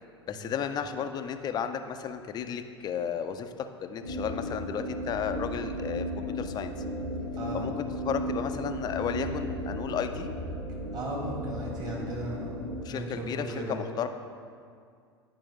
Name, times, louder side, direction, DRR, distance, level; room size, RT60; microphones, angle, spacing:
voice 1, 0.3-3.5 3.8-6.7 7.5-10.3 12.8-14.1, left 8 dB, 30° left, 8 dB, 0.4 m, -33 dB
sound 1, 4.0-12.8, equal, 85° right, 1.1 m, -35 dB
voice 2, 7.4-7.7 10.9-12.5 12.9-13.8, right 2 dB, 25° right, -2 dB, 1.8 m, -36 dB
9.0 x 4.8 x 3.7 m, 2.2 s
figure-of-eight pair, 80°, 14 cm